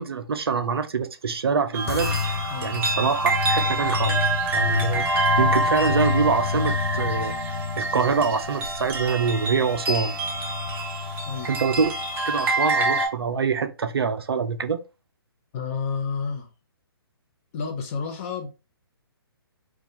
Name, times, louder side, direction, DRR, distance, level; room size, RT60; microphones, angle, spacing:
voice 1, 0.0-4.2 4.5-5.1 5.4-7.4 7.8-10.1 11.5-12.0 12.2-14.8, right 5 dB, 75° right, 0.4 m, -25 dB
sound 1, 1.7-13.1, right 2 dB, 15° right, 0.4 m, -26 dB
sound 2, 1.9-12.5, left 6 dB, 80° left, 0.4 m, -30 dB
voice 2, 15.5-16.5 17.5-18.5, left 5 dB, 35° left, 0.6 m, -30 dB
2.3 x 2.2 x 2.7 m
figure-of-eight pair, 130°, 13 cm